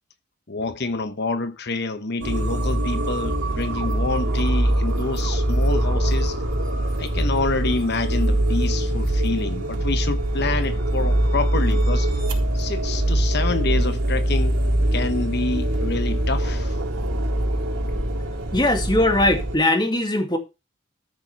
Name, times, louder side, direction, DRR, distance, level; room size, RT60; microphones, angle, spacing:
voice 1, 0.5-6.4 7.0-12.2 12.5-14.6 14.9-16.8, left 3 dB, 50° left, 1.0 m, -27 dB
sound 1, 2.2-19.6, right 1 dB, 90° right, 4.2 m, -23 dB
voice 2, 18.5-20.4, left 1 dB, 20° left, 2.2 m, -20 dB
13.5 x 6.8 x 4.6 m
head